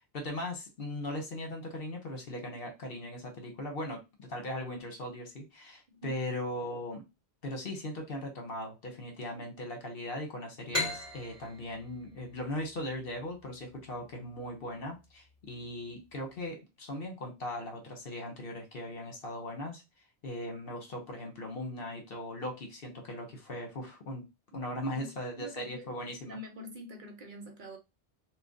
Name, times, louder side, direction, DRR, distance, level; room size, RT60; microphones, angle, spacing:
voice 1, 0.1-7.0 7.4-19.8 20.2-24.3 24.5-26.4, left 1 dB, 65° left, 1.2 m, -39 dB
sound 1, 10.7-14.1, left 1 dB, 15° left, 2.1 m, -38 dB
voice 2, 25.4-26.0 26.2-27.8, equal, 55° right, 0.9 m, -45 dB
3.2 x 2.3 x 3.7 m
omnidirectional pair, 1.1 m